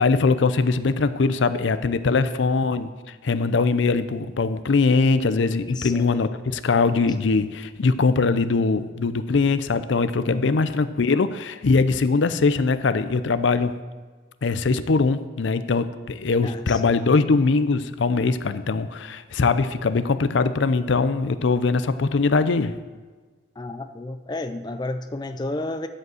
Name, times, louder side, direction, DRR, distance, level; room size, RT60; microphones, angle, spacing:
voice 1, 0.0-13.7 14.4-22.7, left 4 dB, 75° left, 12 dB, 0.5 m, -21 dB
voice 2, 5.7-6.1 10.3-10.6 16.4-16.8 23.6-25.9, left 2 dB, 20° left, 8 dB, 0.4 m, -31 dB
11.0 x 5.1 x 7.7 m, 1.4 s
head